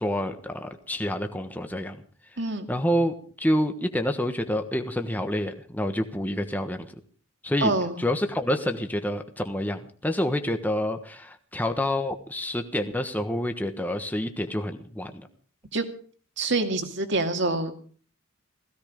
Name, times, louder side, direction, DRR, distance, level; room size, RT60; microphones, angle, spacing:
voice 1, 0.0-2.0 2.7-6.9 7.4-7.7 8.0-15.3, left 1 dB, 10° left, 6 dB, 1.2 m, -28 dB
voice 2, 7.6-8.0 15.7-15.9 16.4-17.7, right 2 dB, 55° right, 6 dB, 2.4 m, -26 dB
17.0 x 16.0 x 5.2 m, 0.43 s
head